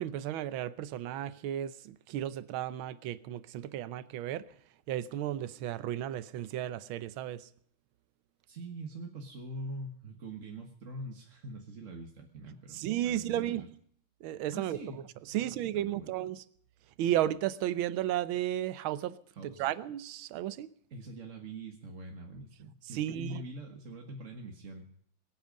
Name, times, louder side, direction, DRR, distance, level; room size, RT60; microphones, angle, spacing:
voice 1, 0.0-4.4 4.9-7.5 12.7-13.6 14.2-14.8 15.3-16.4 17.0-19.2 19.4-20.7 22.9-23.4, right 12 dB, 80° right, 1.5 m, -33 dB
voice 2, 8.5-13.7 14.5-15.0 15.3-16.1 19.3-19.6 20.9-24.9, right 2 dB, 40° right, 1.7 m, -44 dB
23.0 x 9.2 x 5.2 m
omnidirectional pair, 2.3 m